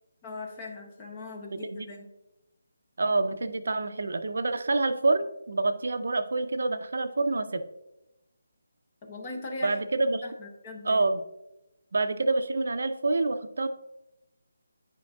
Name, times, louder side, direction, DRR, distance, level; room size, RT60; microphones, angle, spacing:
voice 1, 0.2-2.1 9.0-9.8 10.2-11.0, left 2 dB, 15° left, 2 dB, 0.7 m, -39 dB
voice 2, 1.5-1.9 3.0-7.6 9.6-10.2 10.8-11.2 11.9-13.7, right 3 dB, 55° right, 10 dB, 0.5 m, -27 dB
10.5 x 5.2 x 2.3 m, 0.93 s
hypercardioid pair, 180°, 0 cm